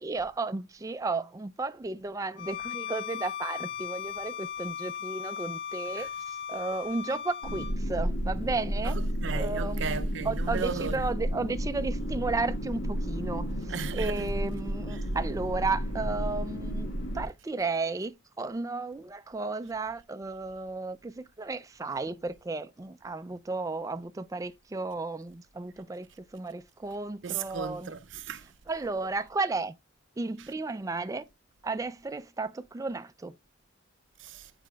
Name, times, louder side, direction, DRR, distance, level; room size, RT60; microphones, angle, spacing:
voice 1, 0.0-9.0 9.3-16.9 17.1-26.1 26.3-27.9 28.7-29.8 30.2-31.3 31.6-33.3, right 3 dB, 15° right, 0.3 m, -33 dB
Bowed string instrument, 2.4-7.8, left 9 dB, 55° left, 0.6 m, -37 dB
sound 1, 7.4-17.3, equal, 70° left, 1.8 m, -32 dB
voice 2, 8.8-11.0 13.7-14.2 14.9-15.0 27.2-28.5 34.2-34.5, right 6 dB, 65° right, 0.5 m, -36 dB
9.2 x 4.9 x 2.3 m
head